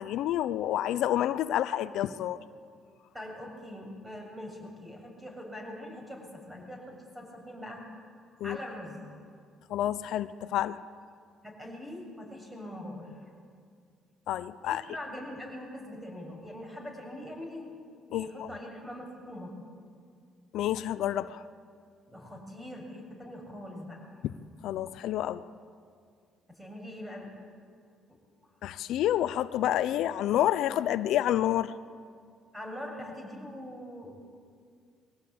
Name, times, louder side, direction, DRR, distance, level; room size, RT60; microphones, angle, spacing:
voice 1, 0.0-2.4 8.4-8.6 9.7-10.8 14.3-14.8 18.1-18.5 20.5-21.4 24.2-24.3 24.6-25.4 28.6-31.7, left 12 dB, 75° left, 13 dB, 0.6 m, -29 dB
voice 2, 3.1-7.9 8.4-9.0 11.4-13.2 14.6-17.7 18.1-19.5 22.1-24.2 26.5-27.3 32.5-34.1, left 1 dB, 15° right, 1 dB, 7.6 m, -42 dB
22.5 x 17.5 x 8.7 m, 2.1 s
supercardioid pair, 80°, 0 cm